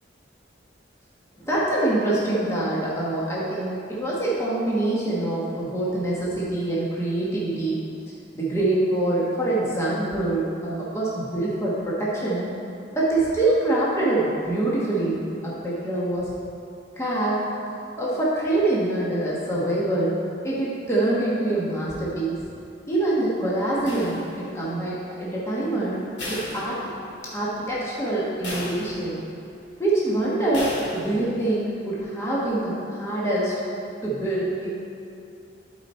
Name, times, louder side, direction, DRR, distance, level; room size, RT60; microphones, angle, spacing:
voice 1, 1.4-7.8 8.3-12.5 12.9-16.3 17.0-17.5 18.0-20.2 20.4-22.4 22.9-26.8 27.3-29.2 29.8-33.5 34.0-34.7, right 2 dB, 15° left, -7 dB, 1.2 m, -25 dB
sound 1, 23.9-24.7 26.2-27.3 27.7-27.8 28.4-29.3 30.5-31.3, left 1 dB, 65° left, 2.1 m, -35 dB
11.5 x 4.3 x 4.3 m, 2.6 s
head